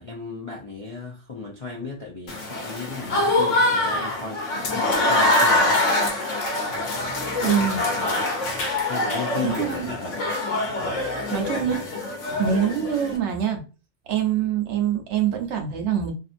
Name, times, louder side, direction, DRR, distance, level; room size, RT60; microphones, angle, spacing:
voice 1, 0.0-4.4 4.7-5.9 7.4-8.3 8.9-10.3, left 4 dB, 50° left, 0.4 m, -35 dB
Applause / Crowd, 2.3-13.2, left 2 dB, 80° left, 1.1 m, -24 dB
voice 2, 7.4-7.8 9.4-9.9 11.3-11.8 12.4-13.6 14.1-16.1, right 9 dB, 70° right, 1.0 m, -24 dB
2.6 x 2.5 x 2.5 m
omnidirectional pair, 1.2 m